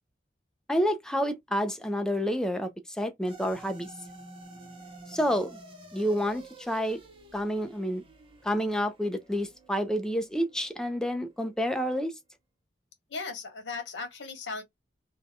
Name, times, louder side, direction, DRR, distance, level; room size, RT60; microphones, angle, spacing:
voice 1, 0.7-3.9 5.1-5.6 5.9-7.0 7.3-8.0 8.4-12.1, equal, 5° left, 0.5 m, -29 dB
sound 1, 3.3-11.8, right 2 dB, 30° right, 0.8 m, -50 dB
voice 2, 13.1-14.6, left 4 dB, 85° left, 0.9 m, -37 dB
2.7 x 2.2 x 2.6 m
head